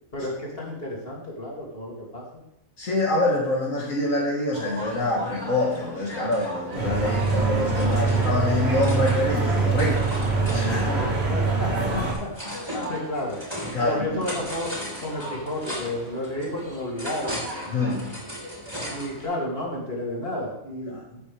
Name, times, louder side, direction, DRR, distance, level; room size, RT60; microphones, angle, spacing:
voice 1, 0.1-2.4 10.9-13.4 13.8-14.7 15.0-18.2 18.9-21.2, left 1 dB, 45° left, -3 dB, 3.0 m, -32 dB
voice 2, 2.8-10.1 10.5-11.0 12.7-12.9 13.7-14.2 17.7-18.0 20.9-21.0, left 2 dB, 70° left, -5 dB, 2.3 m, -26 dB
sound 1, 4.5-19.2, equal, 20° right, 3.7 m, -37 dB
sound 2, 6.7-12.1, right 4 dB, 50° right, 2.3 m, -24 dB
12.5 x 8.6 x 3.5 m, 0.80 s
omnidirectional pair, 1.4 m